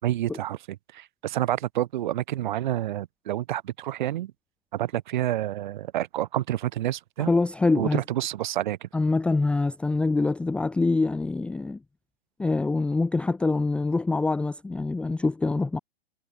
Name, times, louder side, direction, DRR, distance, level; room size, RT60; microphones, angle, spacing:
voice 1, 0.0-0.6 0.9-4.3 4.7-7.3 7.7-8.9, right 13 dB, 50° right, 4.4 m, -28 dB
voice 2, 7.2-8.0 8.9-11.8 12.4-15.8, left 3 dB, 5° left, 0.6 m, -25 dB
figure-of-eight pair, 115°, 30 cm